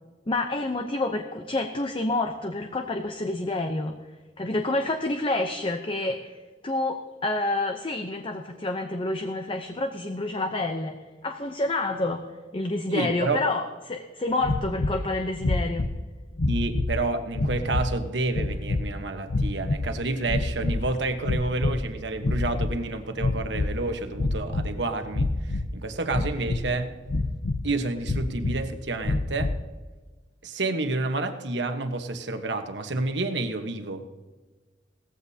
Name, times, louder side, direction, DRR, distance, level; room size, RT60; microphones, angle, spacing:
voice 1, 0.3-4.0 4.4-6.4 6.6-11.0 11.2-12.3 12.5-15.9, left 2 dB, 30° left, 5 dB, 0.7 m, -28 dB
voice 2, 12.9-13.4 16.5-26.9 27.6-29.5 30.4-34.0, right 2 dB, 75° right, 7 dB, 1.2 m, -29 dB
sound 1, 14.4-15.0 15.4-16.0 16.4-17.0 17.3-17.9 18.3-18.8 19.3-19.9 20.2-20.9 21.2-21.9 22.2-22.8 23.2-23.8 24.1-24.7 25.1-25.7 26.1-26.7 27.1-27.7 28.0-28.6 29.0-29.6, left 2 dB, 80° left, 0.8 m, -27 dB
18.0 x 14.5 x 2.8 m, 1.3 s
head